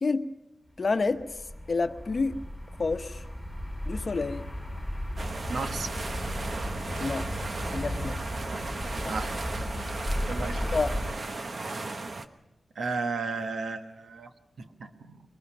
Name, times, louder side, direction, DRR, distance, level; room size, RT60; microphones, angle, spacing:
voice 1, 0.8-1.2 1.7-2.4 2.8-3.2 3.8-4.5 7.0-7.3 7.7-8.2 9.0-9.2 10.7-10.9, left 4 dB, 45° left, 9 dB, 0.9 m, -28 dB
sound 1, 0.8-11.1, equal, 15° right, 5.5 m, -35 dB
sound 2, 5.2-12.3, right 3 dB, 50° right, 1.1 m, -36 dB
voice 2, 5.5-5.9 9.1-9.3 10.3-10.6 12.7-14.3 14.6-15.1, right 4 dB, 90° right, 7 dB, 1.2 m, -33 dB
22.5 x 20.0 x 6.0 m, 0.99 s
wide cardioid pair, 120°, 0 cm